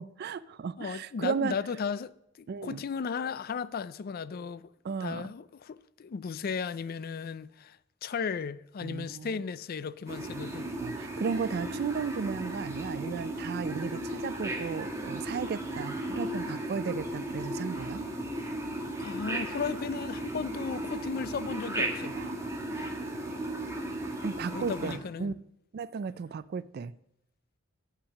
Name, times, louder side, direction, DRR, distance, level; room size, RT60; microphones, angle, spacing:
voice 1, 0.0-1.6 2.5-2.8 4.8-5.2 8.8-9.4 10.8-18.0 22.1-22.4 24.2-25.4 25.7-26.9, right 5 dB, 50° right, 0.3 m, -35 dB
voice 2, 0.8-4.7 5.0-10.7 19.0-22.2 24.5-25.3, left 6 dB, 50° left, 0.4 m, -35 dB
sound 1, 10.1-25.0, right 1 dB, 15° right, 1.3 m, -35 dB
8.3 x 5.8 x 7.2 m
head